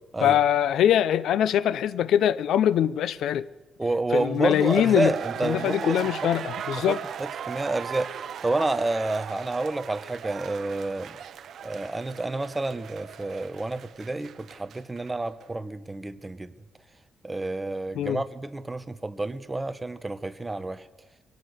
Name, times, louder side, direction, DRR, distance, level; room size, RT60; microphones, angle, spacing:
voice 1, 0.2-3.5 4.1-5.1 5.4-7.0 17.9-18.2, left 10 dB, 80° left, 0.7 m, -23 dB
voice 2, 3.8-6.3 6.9-11.2 11.6-16.5 17.2-20.9, right 2 dB, 15° right, 1.0 m, -29 dB
sound 1, 4.3-15.1 15.4-15.5, right 8 dB, 60° right, 0.9 m, -38 dB
23.5 x 17.5 x 6.7 m
cardioid pair, 120°, 0 cm